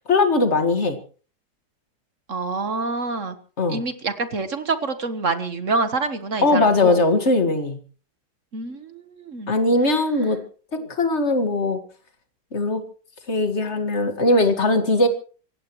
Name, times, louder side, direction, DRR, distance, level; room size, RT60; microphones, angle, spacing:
voice 1, 0.1-1.0 3.6-3.8 6.4-7.8 9.5-10.4 10.7-11.8 12.5-12.8 13.3-15.1, left 2 dB, 35° left, 7 dB, 2.2 m, -20 dB
voice 2, 2.3-3.3 3.7-7.0 8.5-9.6, right 3 dB, 45° right, 10 dB, 1.6 m, -26 dB
25.5 x 17.0 x 3.2 m, 0.40 s
omnidirectional pair, 2.0 m